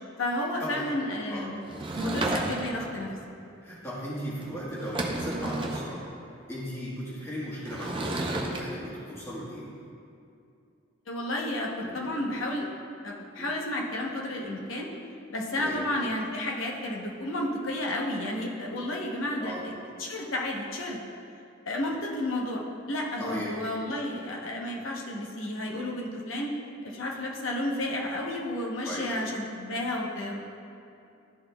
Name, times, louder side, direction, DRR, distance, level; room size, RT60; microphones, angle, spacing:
voice 1, 0.2-1.6 2.0-3.1 11.1-12.7 13.0-14.9 15.3-19.7 20.0-21.0 21.7-22.6 22.9-26.6 26.8-30.5, left 1 dB, 90° left, -1 dB, 0.9 m, -32 dB
Sliding door / Wood, 1.7-2.9 4.4-4.5 4.8-5.9 7.7-8.6, right 2 dB, 25° right, 0.5 m, -31 dB
voice 2, 3.6-6.0 6.5-9.7 11.8-12.3 13.4-13.5 15.6-15.8 19.4-19.6 23.2-23.5 28.8-29.1, equal, 15° left, -8 dB, 1.4 m, -37 dB
12.5 x 4.1 x 2.2 m, 2.6 s
head